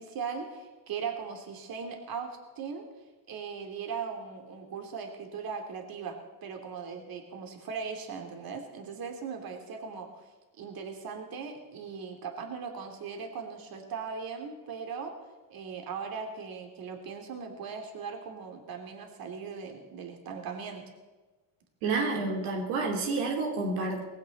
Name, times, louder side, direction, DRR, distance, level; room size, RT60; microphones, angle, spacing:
voice 1, 0.0-2.8 3.3-10.2 10.5-15.1 15.5-20.8, right 6 dB, 50° right, 4 dB, 3.0 m, -39 dB
voice 2, 21.8-24.0, right 3 dB, 85° right, 1 dB, 3.0 m, -29 dB
19.5 x 15.5 x 4.2 m, 1.2 s
supercardioid pair, 95°, 43 cm